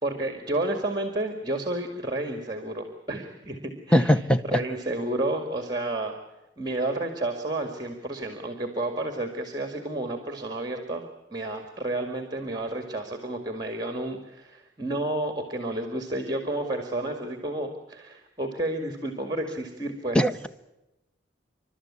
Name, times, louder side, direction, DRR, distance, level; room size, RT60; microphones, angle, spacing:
voice 1, 0.0-4.2 4.5-6.2 6.6-20.2, right 2 dB, 20° right, 6 dB, 2.0 m, -31 dB
voice 2, 3.9-4.6 20.1-20.5, equal, 5° left, 9 dB, 0.9 m, -21 dB
28.5 x 13.0 x 9.8 m, 0.96 s
head